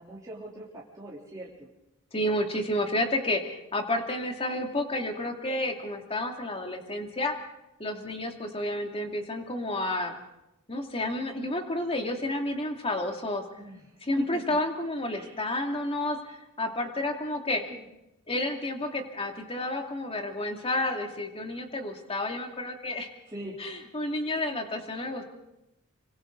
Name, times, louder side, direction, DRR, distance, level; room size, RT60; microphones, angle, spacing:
voice 1, 0.0-1.7 13.6-13.8 14.2-14.6 15.1-15.4 17.7-17.8 23.3-23.6, right 1 dB, 15° right, -7 dB, 3.5 m, -41 dB
voice 2, 2.1-7.3 7.8-10.1 10.7-13.4 14.0-17.6 18.3-23.1 23.6-25.2, left 1 dB, 25° left, 3 dB, 2.6 m, -30 dB
26.5 x 25.0 x 4.0 m, 0.90 s
head